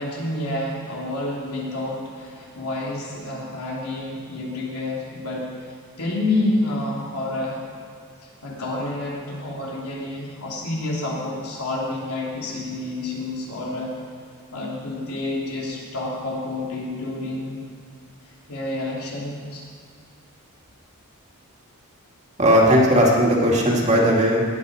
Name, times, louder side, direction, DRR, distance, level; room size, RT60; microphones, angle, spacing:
voice 1, 0.0-5.7 6.0-7.6 8.4-13.9 14.5-17.6 18.5-19.6, left 2 dB, 90° left, -4 dB, 3.2 m, -29 dB
voice 2, 22.4-24.4, equal, 30° right, -2 dB, 2.1 m, -17 dB
19.5 x 8.1 x 4.9 m, 2.1 s
head